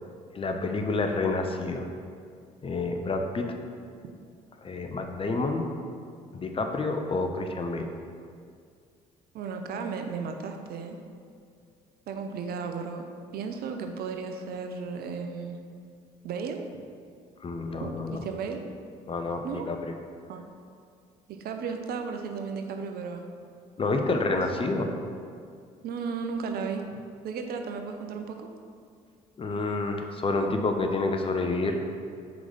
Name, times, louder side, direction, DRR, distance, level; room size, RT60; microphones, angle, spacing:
voice 1, 0.3-1.9 2.6-3.4 4.6-5.7 6.3-7.9 17.4-18.2 19.1-19.8 23.8-25.0 29.4-31.8, left 3 dB, 30° left, 4 dB, 0.7 m, -28 dB
voice 2, 9.3-11.0 12.1-13.0 13.3-15.6 16.2-16.8 17.8-18.6 19.4-19.7 20.3-20.4 21.3-23.3 24.5-24.6 25.8-28.5, right 5 dB, 60° right, 5 dB, 0.6 m, -34 dB
4.7 x 3.9 x 5.3 m, 2.2 s
hypercardioid pair, 55°, 18 cm